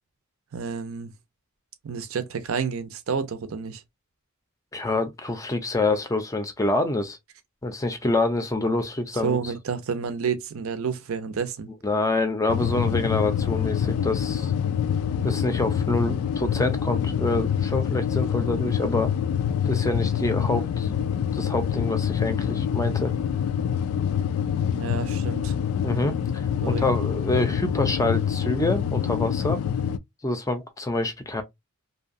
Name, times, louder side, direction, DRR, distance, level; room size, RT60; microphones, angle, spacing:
voice 1, 0.5-1.1 1.8-3.8 9.2-11.7 24.7-25.5 26.6-26.8, right 6 dB, 70° right, 0.5 m, -29 dB
voice 2, 4.7-7.2 7.6-9.4 11.8-14.5 15.2-19.1 19.7-20.9 21.3-23.1 25.8-29.6 30.2-31.4, left 2 dB, 15° left, 0.4 m, -26 dB
sound 1, 12.5-30.0, left 8 dB, 85° left, 0.3 m, -26 dB
2.7 x 2.2 x 2.5 m
head